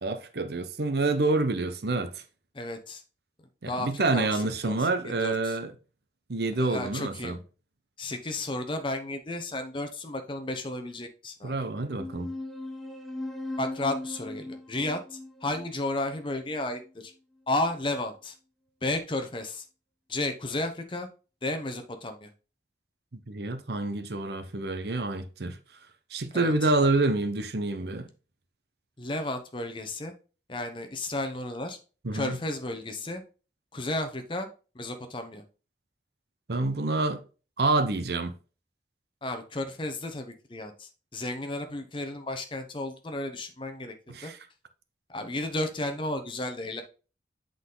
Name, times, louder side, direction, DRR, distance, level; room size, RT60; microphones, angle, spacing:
voice 1, 0.0-2.2 3.6-5.7 6.3-7.4 11.4-12.3 23.3-25.6 26.1-28.1 32.0-32.4 36.5-37.2 37.6-38.4 44.1-44.4, right 2 dB, 65° right, 0.8 m, -27 dB
voice 2, 2.5-3.0 3.7-4.8 5.0-5.6 6.6-7.4 8.0-11.5 13.6-17.1 17.5-18.3 18.8-19.6 20.1-21.1 21.4-22.3 26.3-26.5 29.0-30.1 30.5-31.8 32.1-33.2 33.7-34.5 34.7-35.4 39.2-43.9 44.2-44.3 45.1-46.8, left 2 dB, 30° left, 0.9 m, -33 dB
sound 1, 11.9-16.9, left 2 dB, ahead, 0.8 m, -38 dB
8.0 x 4.0 x 3.8 m
head